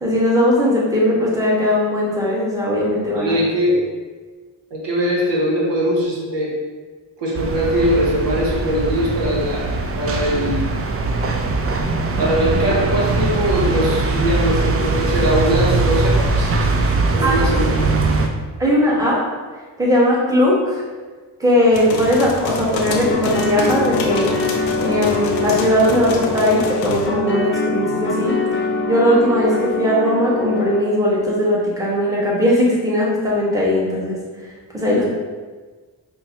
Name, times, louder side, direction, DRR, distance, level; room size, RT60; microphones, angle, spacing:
voice 1, 0.0-3.4 17.2-17.5 18.6-19.2 19.8-20.8 21.4-24.3 24.8-28.4 28.9-34.2 34.7-35.1, left 1 dB, 5° right, -6 dB, 1.3 m, -18 dB
voice 2, 3.2-3.8 4.7-6.5 7.2-10.7 12.2-16.5 17.0-17.9, equal, 70° right, -3 dB, 0.9 m, -21 dB
sound 1, 7.3-18.3, right 3 dB, 35° right, 0.4 m, -20 dB
sound 2, 21.7-27.1, left 4 dB, 90° left, 0.5 m, -28 dB
sound 3, 22.8-30.8, left 3 dB, 25° left, 0.6 m, -24 dB
5.2 x 2.2 x 2.8 m, 1.4 s
cardioid pair, 50°, 45 cm